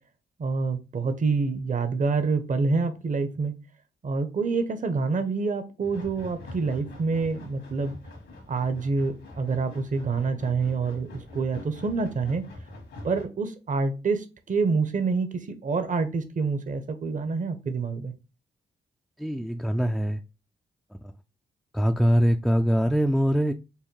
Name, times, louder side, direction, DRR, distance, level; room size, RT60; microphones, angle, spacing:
voice 1, 0.4-3.5 4.0-8.0 8.5-12.4 13.0-18.1, right 4 dB, 45° right, 0.8 m, -27 dB
sound 1, 5.8-13.2, left 2 dB, 75° left, 1.5 m, -44 dB
voice 2, 19.2-20.2 20.9-21.1 21.7-23.5, equal, ahead, 0.3 m, -23 dB
5.5 x 2.2 x 3.1 m
supercardioid pair, 55°, 19 cm